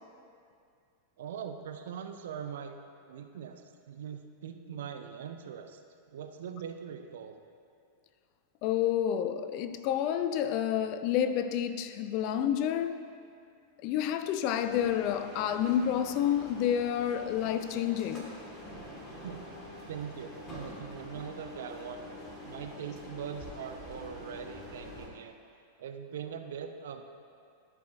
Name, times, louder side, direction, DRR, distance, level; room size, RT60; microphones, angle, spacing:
voice 1, 1.2-2.7 3.1-3.6 3.9-5.8 6.1-7.4 19.2-19.4 19.9-22.0 22.4-25.3 25.8-27.0, right 8 dB, 60° right, 6 dB, 0.6 m, -41 dB
voice 2, 8.6-13.0 13.8-18.3, left 10 dB, 45° left, 10 dB, 0.4 m, -29 dB
sound 1, 14.6-25.1, left 1 dB, 20° left, 1.7 m, -46 dB
14.5 x 4.9 x 2.6 m, 2.3 s
figure-of-eight pair, 90°, 0 cm